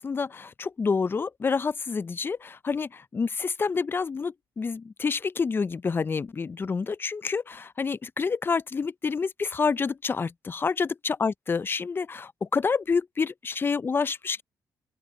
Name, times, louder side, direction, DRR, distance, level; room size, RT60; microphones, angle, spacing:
voice 1, 0.0-14.4, left 5 dB, 30° left, 0.4 m, -28 dB
open air
cardioid pair, 100°, 7 cm